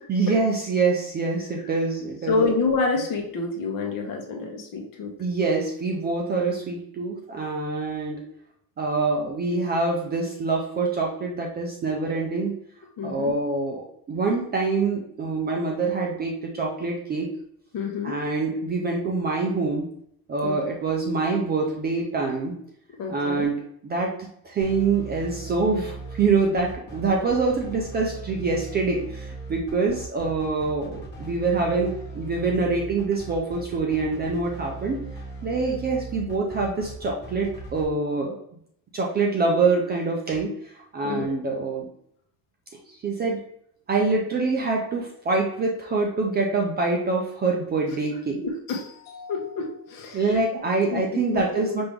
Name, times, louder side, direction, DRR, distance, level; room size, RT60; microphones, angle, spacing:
voice 1, 0.1-2.6 5.2-8.2 8.8-12.5 13.0-17.3 18.0-19.9 20.3-22.5 23.1-24.1 24.4-35.0 35.4-38.4 38.9-41.9 43.0-43.4 43.9-48.4 50.1-51.9, right 3 dB, 25° right, 0 dB, 0.4 m, -25 dB
voice 2, 2.3-5.1 13.0-13.3 17.7-18.2 20.4-20.6 23.0-23.5 41.0-41.3 48.7-50.4 50.9-51.0 51.3-51.7, left 4 dB, 50° left, 2 dB, 1.1 m, -28 dB
sound 1, 24.6-37.8, right 2 dB, 25° left, 1.2 m, -38 dB
5.2 x 2.9 x 3.5 m, 0.70 s
cardioid pair, 165°, 44 cm